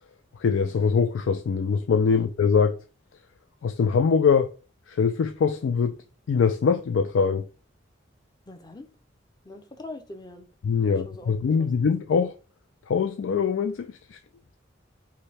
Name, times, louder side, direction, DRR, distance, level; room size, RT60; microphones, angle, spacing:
voice 1, 0.4-2.8 3.6-4.5 4.9-6.0 6.3-7.5 10.6-12.3 12.9-14.0, left 5 dB, 85° left, 0.4 m, -23 dB
voice 2, 8.5-8.9 9.4-10.5 10.8-11.7, left 2 dB, 20° left, 0.6 m, -43 dB
5.0 x 2.1 x 4.1 m
head